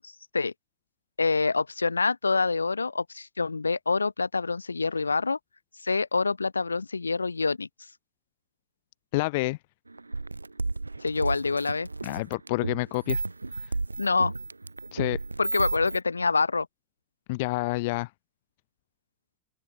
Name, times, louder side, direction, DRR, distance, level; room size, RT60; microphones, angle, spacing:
voice 1, 1.2-5.4 5.8-7.7 11.0-11.9 14.0-14.3 15.4-16.7, left 4 dB, 80° left, 4.8 m, -26 dB
voice 2, 9.1-9.6 12.0-13.2 13.5-13.7 14.9-15.2 17.3-18.1, left 22 dB, 50° left, 1.0 m, -28 dB
sound 1, 9.9-16.0, right 3 dB, 80° right, 4.2 m, -33 dB
open air
figure-of-eight pair, 90°, 0 cm